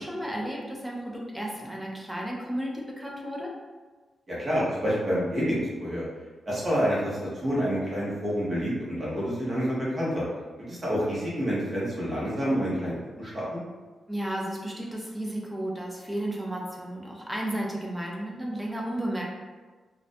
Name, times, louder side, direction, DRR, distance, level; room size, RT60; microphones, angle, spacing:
voice 1, 0.0-3.5 14.1-19.2, right 1 dB, 5° right, -2 dB, 0.4 m, -33 dB
voice 2, 4.3-6.0 6.5-10.2 10.6-13.6, equal, 25° right, -8 dB, 0.7 m, -28 dB
2.4 x 2.1 x 2.5 m, 1.4 s
wide cardioid pair, 175°, 0 cm